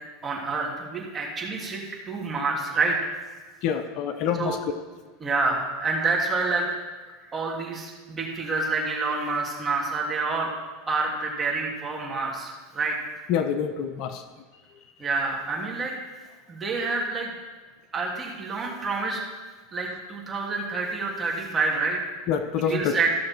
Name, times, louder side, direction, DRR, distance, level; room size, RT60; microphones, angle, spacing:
voice 1, 0.2-3.1 4.4-4.6 5.2-6.7 7.3-10.5 10.9-12.9 15.0-16.0 16.5-17.3 17.9-19.2 19.7-22.0 22.6-23.1, right 3 dB, 20° right, -2 dB, 2.7 m, -28 dB
voice 2, 3.6-4.6 13.3-14.2 22.3-23.0, left 8 dB, 55° left, 8 dB, 0.8 m, -26 dB
14.5 x 6.4 x 4.5 m, 1.3 s
hypercardioid pair, 105°, 0 cm